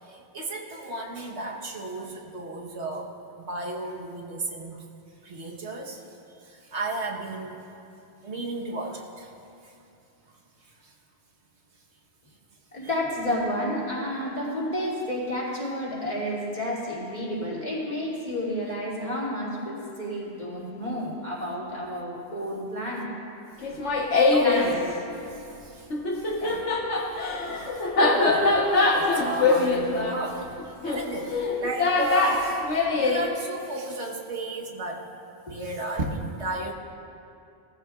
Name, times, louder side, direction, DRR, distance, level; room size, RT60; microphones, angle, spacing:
voice 1, 0.3-3.1 3.5-4.8 5.2-6.0 6.7-7.6 8.2-9.3 24.3-24.9 27.7-30.4 30.8-32.6 32.9-35.0 35.5-36.7, right 2 dB, 75° right, -1 dB, 1.5 m, -33 dB
voice 2, 12.7-23.1 24.4-24.7 26.4-26.6 35.5-35.6, equal, 35° left, -6 dB, 2.9 m, -31 dB
Laughter, 23.6-24.7 25.9-33.2, left 3 dB, 90° left, 1.6 m, -23 dB
18.5 x 14.0 x 2.4 m, 2.7 s
omnidirectional pair, 1.2 m